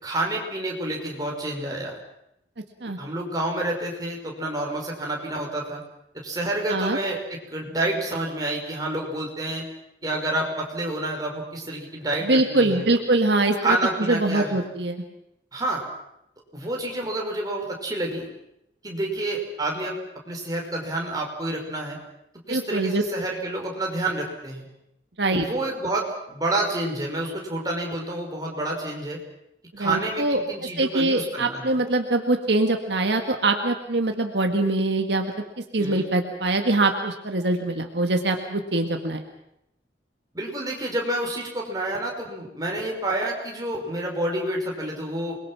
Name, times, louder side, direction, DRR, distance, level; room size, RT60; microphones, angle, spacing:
voice 1, 0.0-2.0 3.0-5.8 6.2-9.7 10.0-12.8 13.6-14.6 15.5-15.8 16.5-18.3 18.8-20.0 20.3-22.0 22.5-24.7 25.3-29.2 29.8-31.8 35.8-36.1 40.3-45.4, right 1 dB, 20° right, -1 dB, 5.4 m, -29 dB
voice 2, 12.2-13.8 14.1-15.0 22.5-23.0 25.2-25.5 29.7-30.4 30.8-39.2, right 2 dB, 70° right, 4 dB, 1.8 m, -23 dB
28.5 x 22.0 x 6.2 m, 0.80 s
head